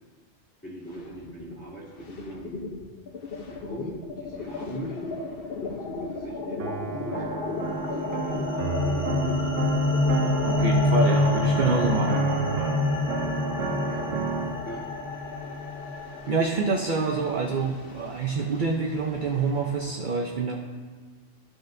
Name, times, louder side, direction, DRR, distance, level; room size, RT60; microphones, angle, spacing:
voice 1, 0.6-2.7 3.5-5.2 5.6-7.4 7.8-9.4 13.8-14.1 14.6-14.9 16.2-16.5, equal, 10° left, -9 dB, 2.6 m, -40 dB
sound 1, 0.8-1.6 1.9-20.0, left 3 dB, 55° left, 0.9 m, -36 dB
sound 2, 6.6-14.6, right 5 dB, 75° right, 0.9 m, -31 dB
sound 3, 7.7-16.2, left 3 dB, 35° left, 0.6 m, -27 dB
voice 2, 10.4-12.2 16.3-20.6, right 4 dB, 50° right, 1 dB, 0.7 m, -26 dB
14.0 x 5.9 x 2.6 m, 1.5 s
omnidirectional pair, 1.2 m